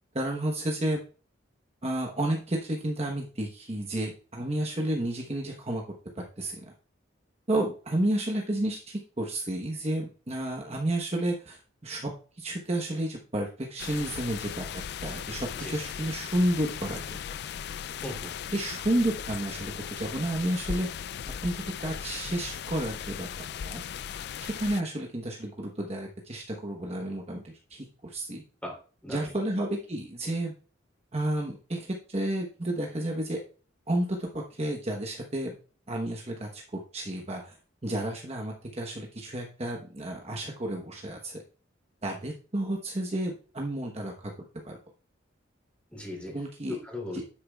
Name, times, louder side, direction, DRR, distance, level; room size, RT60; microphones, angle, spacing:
voice 1, 0.1-1.0 1.8-5.8 6.1-6.6 7.5-12.1 12.4-17.2 18.5-20.9 21.4-23.8 24.4-28.4 29.1-30.5 31.1-33.4 33.9-35.5 35.9-37.6 37.8-41.4 42.0-44.3 44.6-44.8 46.3-46.8 47.1-47.2, right 1 dB, 30° right, 0 dB, 1.0 m, -31 dB
sound 1, 13.8-24.8, left 8 dB, 55° left, 0.3 m, -37 dB
voice 2, 18.0-18.3 28.6-29.3 45.9-46.4 46.7-47.2, left 2 dB, 5° left, -1 dB, 2.9 m, -38 dB
9.9 x 8.6 x 2.3 m, 0.38 s
head